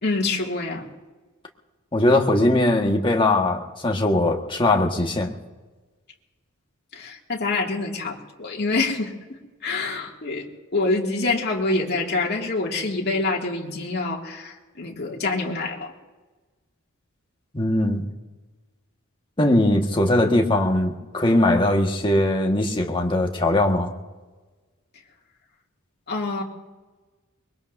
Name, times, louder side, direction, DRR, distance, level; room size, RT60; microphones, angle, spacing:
voice 1, 0.0-0.9 6.9-15.9 26.1-26.4, left 3 dB, 50° left, -1 dB, 2.3 m, -26 dB
voice 2, 1.9-5.3 17.5-18.1 19.4-23.9, left 1 dB, 25° left, 1 dB, 1.6 m, -20 dB
24.0 x 22.5 x 2.7 m, 1.3 s
head